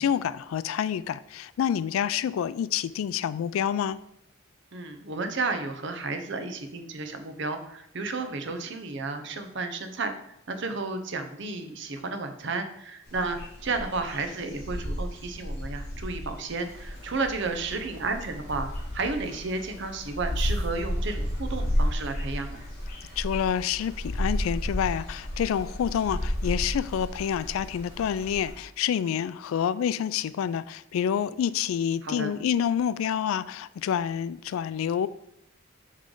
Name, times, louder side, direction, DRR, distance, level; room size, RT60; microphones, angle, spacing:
voice 1, 0.0-4.0 23.2-35.1, left 8 dB, 90° left, 16 dB, 0.3 m, -28 dB
voice 2, 4.7-10.1 10.5-22.6 32.0-32.3, right 3 dB, 60° right, 7 dB, 0.7 m, -32 dB
sound 1, 13.1-28.5, equal, 50° left, 1.6 m, -32 dB
sound 2, 16.5-28.6, left 1 dB, 20° right, 2.1 m, -47 dB
8.7 x 3.2 x 3.8 m, 0.79 s
head